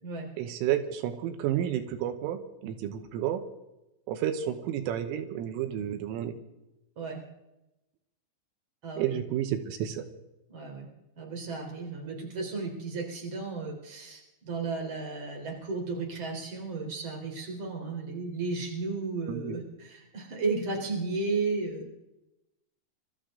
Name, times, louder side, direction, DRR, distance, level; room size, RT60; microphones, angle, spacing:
voice 1, 0.4-3.4 4.1-6.4 9.0-10.0 19.3-19.6, right 10 dB, 85° right, 8 dB, 3.6 m, -31 dB
voice 2, 10.5-10.9 11.1-22.0, right 3 dB, 30° right, 0 dB, 3.7 m, -34 dB
25.5 x 13.5 x 3.8 m, 0.94 s
omnidirectional pair, 5.7 m